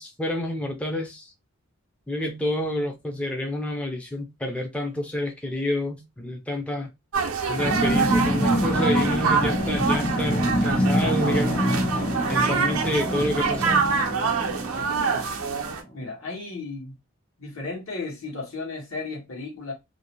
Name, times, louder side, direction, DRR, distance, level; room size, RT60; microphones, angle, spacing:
voice 1, 0.0-1.3 2.1-6.9 7.5-11.7 12.3-14.0, left 1 dB, 5° left, 0.3 m, -29 dB
sound 1, 7.1-15.8, right 5 dB, 90° right, 0.5 m, -26 dB
sound 2, 7.6-15.7, equal, 40° left, 0.8 m, -26 dB
voice 2, 14.7-15.2 15.9-17.0 17.4-19.7, left 3 dB, 80° left, 1.1 m, -35 dB
2.5 x 2.0 x 2.8 m
head